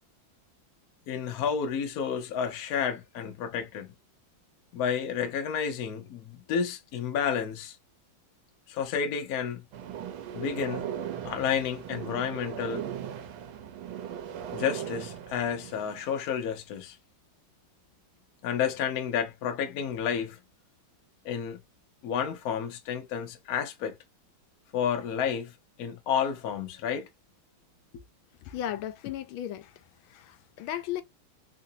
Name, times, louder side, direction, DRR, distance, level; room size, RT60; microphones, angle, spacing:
voice 1, 1.1-3.9 4.7-7.8 8.7-9.6 10.3-10.9 11.2-12.9 14.5-17.0 18.4-20.4 21.2-21.6 22.0-24.0 24.7-25.5 25.8-27.1, left 7 dB, 60° left, 1.0 m, -30 dB
sound 1, 9.7-16.1, right 9 dB, 80° right, 1.5 m, -38 dB
voice 2, 28.4-29.8 30.1-31.0, left 11 dB, 85° left, 1.4 m, -35 dB
3.7 x 2.6 x 2.7 m
omnidirectional pair, 2.2 m